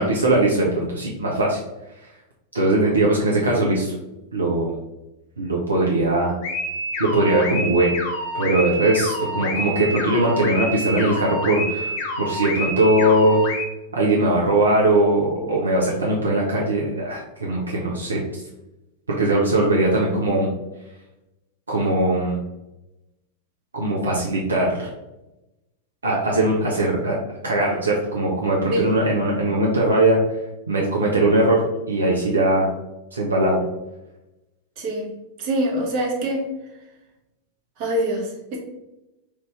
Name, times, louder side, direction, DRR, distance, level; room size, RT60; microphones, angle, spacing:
voice 1, 0.0-1.6 2.5-3.9 4.3-4.7 5.4-6.4 7.0-8.0 8.3-11.9 12.2-13.4 13.9-18.2 19.1-20.5 21.7-22.4 23.7-24.9 26.0-27.2 27.4-30.2 30.7-32.7 33.1-33.7, right 1 dB, 75° right, -3 dB, 0.6 m, -20 dB
sound 1, 6.4-13.6, left 1 dB, 50° left, 0.8 m, -28 dB
voice 2, 34.8-35.1 35.4-36.5 37.8-38.6, right 1 dB, 45° right, -1 dB, 0.9 m, -25 dB
3.1 x 2.6 x 3.3 m, 0.97 s
figure-of-eight pair, 90°, 0 cm